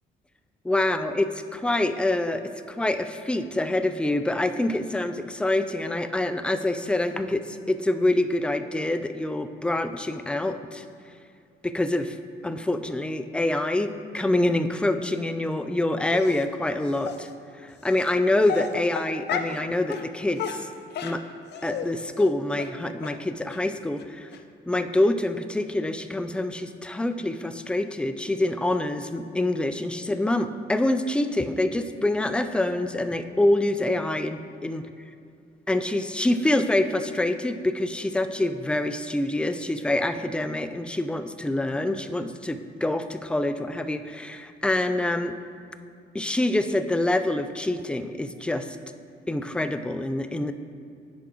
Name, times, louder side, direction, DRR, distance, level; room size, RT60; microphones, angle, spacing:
voice 1, 0.6-10.8 11.6-12.2 12.4-17.3 17.6-20.6 21.0-21.2 21.6-24.3 24.7-34.8 35.7-45.4 46.1-48.7 49.3-50.5, left 1 dB, 5° left, 9 dB, 0.3 m, -26 dB
Dog, 16.1-16.4 17.0-17.2 18.0-18.1 18.4-19.6 19.9-20.1 20.4-21.9 22.2-22.3 22.6-22.7 23.0-23.1 23.5-23.6 24.0-24.1 24.3-24.4, left 7 dB, 60° left, 0.5 m, -33 dB
5.8 x 4.8 x 5.0 m, 2.5 s
cardioid pair, 90°, 20 cm